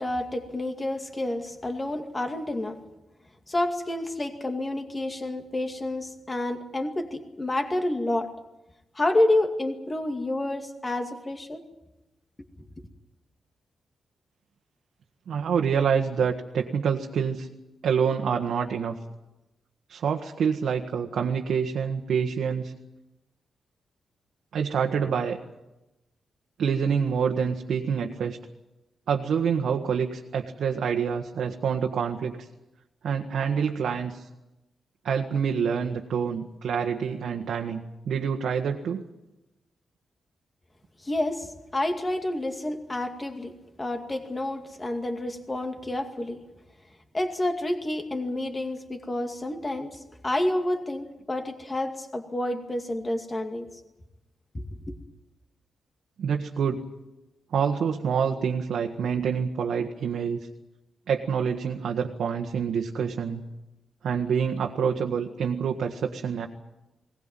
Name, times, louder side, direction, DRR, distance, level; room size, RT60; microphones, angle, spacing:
voice 1, 0.0-2.8 3.5-8.3 9.0-11.6 41.0-46.4 47.1-53.7 54.5-55.0, left 1 dB, 20° left, 5 dB, 2.3 m, -29 dB
voice 2, 15.3-17.5 17.8-19.0 19.9-22.7 24.5-25.4 26.6-28.4 29.1-32.5 33.0-34.3 35.0-39.0 56.2-56.8 57.5-60.5 61.1-63.4 64.0-66.5, right 7 dB, 75° right, 2 dB, 1.6 m, -27 dB
20.5 x 19.0 x 9.0 m, 0.98 s
wide cardioid pair, 155°, 0 cm